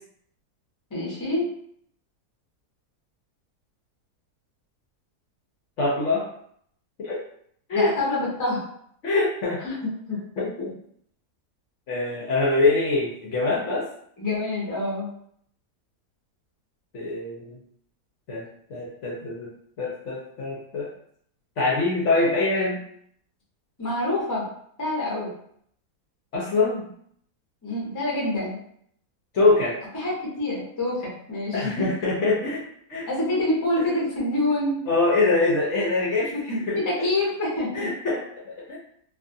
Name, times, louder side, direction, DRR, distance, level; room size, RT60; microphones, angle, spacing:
voice 1, 0.9-1.5 7.7-8.6 9.6-9.7 10.1-10.2 14.2-15.1 23.8-24.5 24.8-25.3 27.6-28.6 29.9-31.9 33.1-34.8 36.3-37.9, left 2 dB, 25° left, -5 dB, 0.4 m, -26 dB
voice 2, 5.8-6.3 7.0-7.2 7.7-7.9 9.0-9.6 10.4-10.7 11.9-13.9 16.9-17.6 18.3-19.5 19.8-20.9 21.6-22.8 26.3-26.8 29.3-29.7 31.5-32.6 32.9-33.1 33.9-34.0 34.9-36.8 37.7-38.8, left 3 dB, 65° left, -4 dB, 0.8 m, -24 dB
2.5 x 2.3 x 2.6 m, 0.66 s
omnidirectional pair, 1.7 m